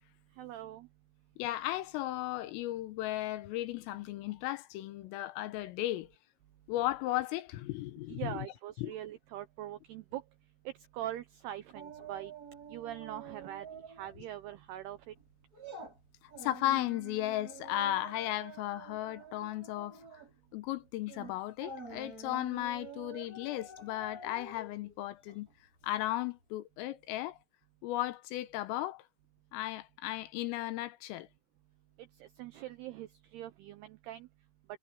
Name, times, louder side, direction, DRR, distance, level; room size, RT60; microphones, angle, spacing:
voice 1, 0.4-0.9 8.1-10.2 10.7-12.3 12.7-15.1 32.2-34.3, right 12 dB, 85° right, 2.3 m, -43 dB
voice 2, 1.4-6.1 6.7-8.5 8.8-8.9 16.4-20.0 20.5-25.5 25.8-27.4 27.8-29.0 29.5-31.3, left 15 dB, 85° left, 3.7 m, -35 dB
sound 1, 11.7-14.2 14.5-14.7 15.1-26.1 26.4-26.5, right 3 dB, 15° right, 6.0 m, -48 dB
omnidirectional pair, 5.8 m